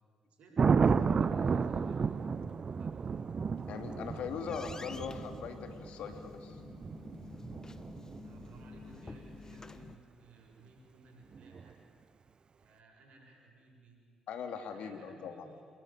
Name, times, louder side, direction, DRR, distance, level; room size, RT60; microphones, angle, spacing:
voice 1, 0.3-2.1 2.7-3.0 8.2-11.8 12.6-14.0 14.7-15.6, right 3 dB, 65° right, 0 dB, 7.9 m, -57 dB
Thunder, 0.6-8.6 11.3-11.7, right 5 dB, 45° right, 0.9 m, -32 dB
sound 1, 3.4-9.9, left 4 dB, 25° left, 1.6 m, -50 dB
voice 2, 3.7-6.6 14.3-15.5, left 6 dB, 65° left, 6 dB, 2.9 m, -40 dB
27.0 x 20.5 x 9.2 m, 2.4 s
hypercardioid pair, 50°, 2 cm